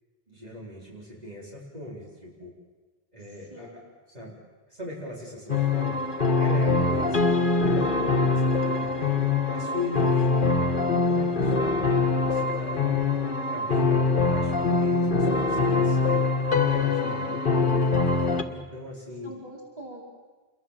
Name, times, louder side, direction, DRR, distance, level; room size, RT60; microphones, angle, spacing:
voice 1, 0.3-2.5 3.1-3.8 4.1-4.3 4.7-6.1 6.4-9.0 9.5-10.6 11.1-12.8 13.5-16.2 16.7-17.8 18.3-19.3, left 2 dB, 40° right, -5 dB, 4.8 m, -39 dB
sound 1, 5.5-18.4, left 3 dB, 55° left, 1.6 m, -23 dB
voice 2, 6.6-7.0 8.7-9.4 19.2-20.0, right 2 dB, 25° right, -2 dB, 5.1 m, -42 dB
28.5 x 22.5 x 7.6 m, 1.3 s
omnidirectional pair, 1.0 m